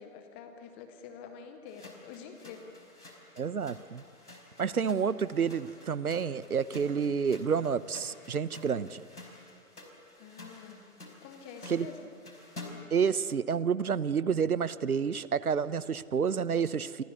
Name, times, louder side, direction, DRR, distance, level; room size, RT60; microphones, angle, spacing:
voice 1, 0.0-2.6 3.0-3.3 10.2-10.8 11.2-12.1, left 7 dB, 10° left, 7 dB, 0.5 m, -47 dB
sound 1, 1.7-13.0, left 2 dB, 85° left, 4.8 m, -50 dB
voice 2, 3.4-4.0 4.6-9.0 11.7-11.9 12.9-17.0, right 6 dB, 75° right, 17 dB, 1.0 m, -29 dB
29.0 x 24.0 x 6.9 m, 2.4 s
figure-of-eight pair, 125°, 44 cm